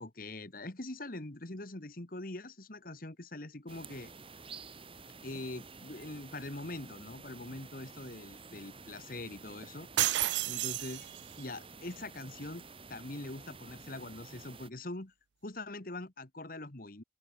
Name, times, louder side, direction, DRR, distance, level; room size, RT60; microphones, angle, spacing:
voice 1, 0.0-4.1 5.2-9.9 10.5-11.0 11.4-12.6 12.9-15.1 15.4-17.0, left 2 dB, 50° left, 1.8 m, -43 dB
sound 1, 3.7-14.7, right 4 dB, 30° right, 5.9 m, -51 dB
sound 2, 10.0-11.4, right 15 dB, 70° right, 0.4 m, -31 dB
head